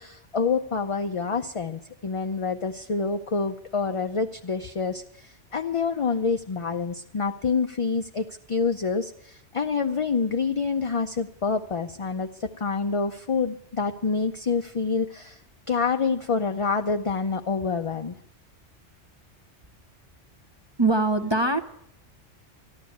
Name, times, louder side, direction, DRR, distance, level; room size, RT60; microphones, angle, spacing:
voice 1, 0.0-15.4 15.7-18.2, left 5 dB, 40° left, 6 dB, 0.5 m, -27 dB
voice 2, 20.8-21.6, right 2 dB, 25° right, 5 dB, 0.7 m, -22 dB
13.5 x 12.0 x 8.4 m, 0.74 s
omnidirectional pair, 1.2 m